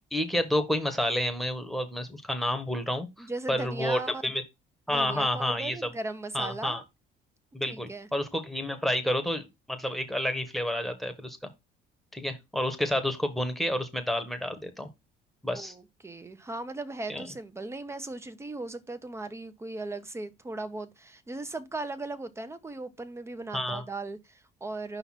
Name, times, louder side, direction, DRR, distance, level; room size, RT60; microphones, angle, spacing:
voice 1, 0.1-4.4 4.9-5.9 6.3-6.8 7.5-11.4 12.1-14.9 15.4-15.7 17.1-17.2 23.5-23.8, left 1 dB, ahead, 1.5 m, -30 dB
voice 2, 3.2-4.2 4.9-6.8 7.7-8.1 15.5-25.0, right 2 dB, 15° right, 1.0 m, -38 dB
5.6 x 3.9 x 5.9 m
cardioid pair, 110°, 17 cm